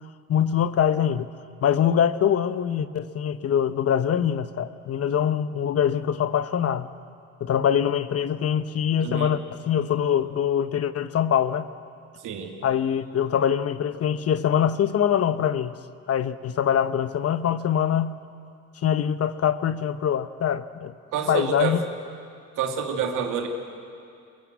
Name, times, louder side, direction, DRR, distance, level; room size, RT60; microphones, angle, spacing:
voice 1, 0.3-1.3 1.6-6.9 7.4-11.7 12.6-15.7 16.1-18.2 18.8-20.9 21.3-21.8, left 9 dB, 50° left, 13 dB, 1.0 m, -23 dB
voice 2, 9.0-9.4 12.2-12.5 21.1-21.8 22.6-23.5, right 7 dB, 90° right, 3 dB, 2.6 m, -28 dB
23.0 x 21.5 x 8.3 m, 2.5 s
cardioid pair, 90°, 30 cm